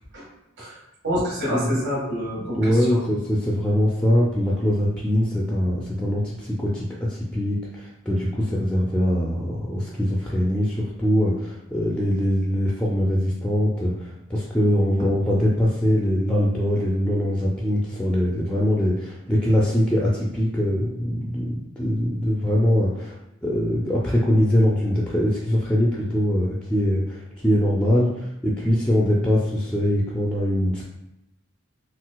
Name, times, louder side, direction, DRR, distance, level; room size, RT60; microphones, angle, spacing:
voice 1, 1.0-3.0, equal, 60° right, -7 dB, 1.3 m, -27 dB
voice 2, 2.5-23.2 23.4-30.8, equal, 5° left, -4 dB, 0.3 m, -22 dB
3.9 x 2.3 x 2.2 m, 0.87 s
head